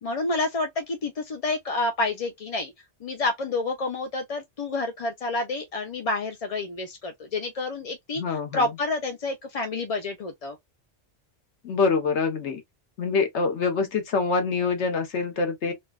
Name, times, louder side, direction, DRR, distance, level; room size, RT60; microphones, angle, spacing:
voice 1, 0.0-2.7 3.0-10.6, left 2 dB, 50° left, 0.4 m, -29 dB
voice 2, 8.2-8.7 11.6-12.6 13.0-15.7, left 4 dB, 80° left, 1.2 m, -25 dB
4.3 x 2.2 x 2.3 m
omnidirectional pair, 1.2 m